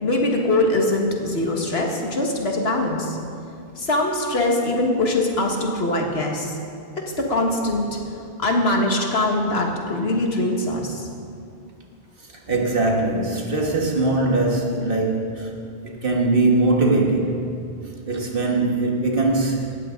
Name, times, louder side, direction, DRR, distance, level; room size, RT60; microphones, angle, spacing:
voice 1, 0.0-3.2 3.8-6.5 7.0-8.0 8.4-11.1, left 2 dB, 75° left, 1 dB, 1.9 m, -22 dB
voice 2, 12.2-15.5 15.8-17.5 18.1-19.8, right 2 dB, 60° right, 0 dB, 1.8 m, -21 dB
17.5 x 13.5 x 3.9 m, 2.4 s
omnidirectional pair, 1.1 m